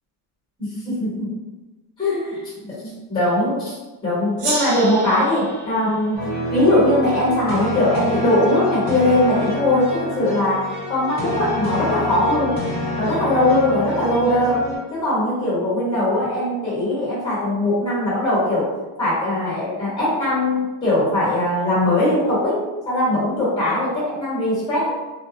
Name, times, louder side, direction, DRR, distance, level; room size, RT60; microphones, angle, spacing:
voice 1, 0.6-1.3 2.0-3.7 4.0-6.2 6.5-10.6 10.9-12.5 13.0-14.6 14.9-18.7 19.0-22.6 22.8-25.0, left 1 dB, 10° left, -10 dB, 1.3 m, -20 dB
Gong, 4.4-7.5, right 3 dB, 60° right, 0.7 m, -31 dB
sound 1, 6.2-14.8, left 2 dB, 20° right, 1.1 m, -27 dB
2.3 x 2.0 x 2.6 m, 1.1 s
cardioid pair, 135°, 49 cm